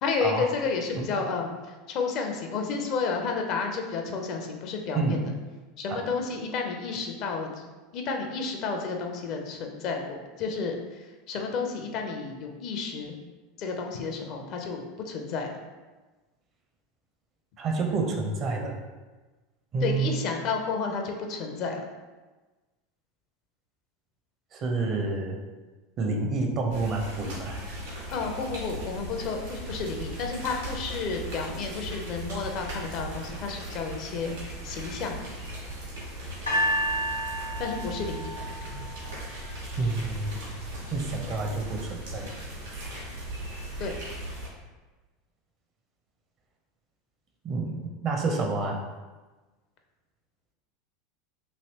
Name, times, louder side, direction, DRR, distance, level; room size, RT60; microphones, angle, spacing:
voice 1, 0.0-1.5 1.9-5.2 5.8-7.7 7.9-10.8 11.3-13.1 13.6-15.5 19.8-21.8 28.1-35.3 37.6-38.4 43.8-44.0, left 4 dB, 50° left, 3 dB, 0.5 m, -31 dB
voice 2, 17.6-18.8 19.7-20.1 24.5-25.4 26.0-27.8 39.8-40.4 40.9-42.3 42.7-42.9 47.4-48.8, right 3 dB, 40° right, 2 dB, 0.6 m, -29 dB
sound 1, 26.7-44.5, right 1 dB, 75° right, 1.3 m, -38 dB
sound 2, 36.5-39.6 40.4-40.5, equal, 90° left, 0.7 m, -30 dB
3.1 x 2.8 x 2.7 m, 1.2 s
figure-of-eight pair, 80°, 0 cm